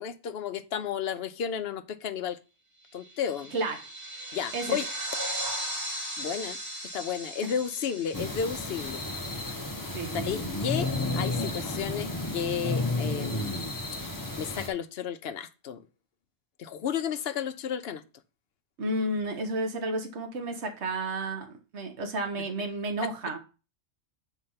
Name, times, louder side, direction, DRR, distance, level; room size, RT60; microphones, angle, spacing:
voice 1, 0.0-2.4 2.9-3.5 4.3-4.9 6.2-6.6 6.9-9.0 10.1-13.6 14.4-15.8 16.6-18.0 23.0-23.1, left 8 dB, 65° left, 0.8 m, -33 dB
sound 1, 3.0-9.8, right 1 dB, 20° right, 1.7 m, -37 dB
voice 2, 3.5-3.9 4.5-4.8 7.4-7.5 9.9-10.2 18.8-23.4, right 2 dB, 70° right, 1.4 m, -32 dB
sound 2, 8.1-14.7, left 2 dB, 20° left, 0.8 m, -32 dB
8.1 x 3.3 x 5.5 m
omnidirectional pair, 1.2 m